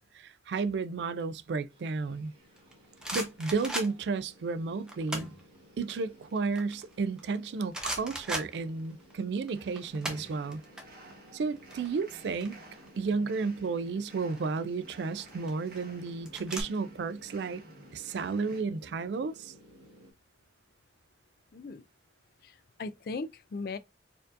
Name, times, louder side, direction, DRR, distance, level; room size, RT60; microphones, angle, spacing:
voice 1, 0.1-2.3 3.1-5.3 5.8-10.6 11.3-12.6 13.0-17.6 17.9-19.5, right 4 dB, 75° right, 0.3 m, -32 dB
sound 1, 1.7-20.1, equal, 30° right, 1.4 m, -57 dB
sound 2, 2.6-4.2 4.9-5.4 5.8-7.3 7.7-9.1 9.4-10.8 11.1-11.3 11.6-13.1 14.1-14.5 15.2-16.6, right 1 dB, 5° right, 0.6 m, -38 dB
els segadors, 9.5-18.6, right 2 dB, 55° right, 1.2 m, -54 dB
voice 2, 21.5-21.8 22.4-23.8, left 3 dB, 55° left, 0.3 m, -38 dB
4.3 x 2.6 x 2.4 m
head